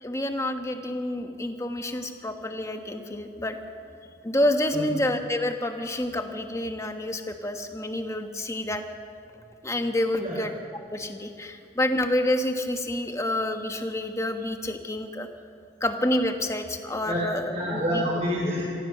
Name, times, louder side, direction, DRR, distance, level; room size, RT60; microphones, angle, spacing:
voice 1, 0.0-3.6 4.2-8.8 9.6-10.5 10.9-15.3 15.8-17.8, left 1 dB, 15° left, 5 dB, 1.3 m, -28 dB
voice 2, 17.5-18.7, equal, 35° right, -6 dB, 4.8 m, -28 dB
25.5 x 16.5 x 6.7 m, 2.6 s
head